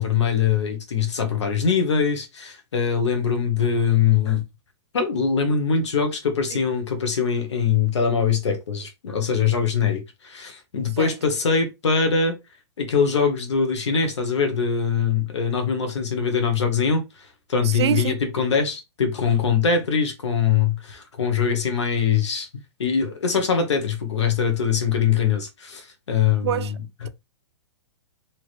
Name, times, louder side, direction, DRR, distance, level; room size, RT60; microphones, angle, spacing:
voice 1, 0.0-4.4 4.9-12.4 12.8-17.0 17.5-22.5 22.8-27.1, left 6 dB, 85° left, 1.2 m, -22 dB
voice 2, 17.7-18.2 26.4-26.7, right 11 dB, 70° right, 0.4 m, -24 dB
3.4 x 2.9 x 2.4 m
hypercardioid pair, 135°, 14 cm